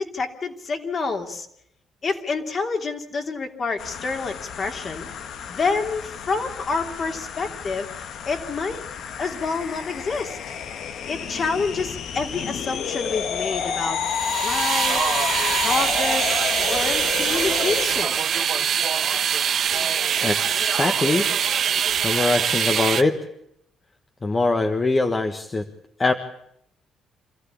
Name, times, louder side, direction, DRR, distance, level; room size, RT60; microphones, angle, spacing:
voice 1, 0.0-1.5 2.0-5.1 5.5-8.8 9.2-10.4 11.1-14.0 14.4-15.2 15.6-18.2, left 4 dB, 40° left, 4 dB, 3.0 m, -28 dB
sound 1, 3.8-17.9, left 7 dB, 70° left, 1.6 m, -30 dB
sound 2, 14.1-23.0, right 8 dB, 55° right, 1.1 m, -23 dB
voice 2, 20.2-21.3 22.0-23.2 24.2-25.6 26.0-26.1, left 3 dB, 25° left, 5 dB, 1.5 m, -22 dB
27.0 x 15.0 x 8.6 m, 0.74 s
cardioid pair, 105°, 0 cm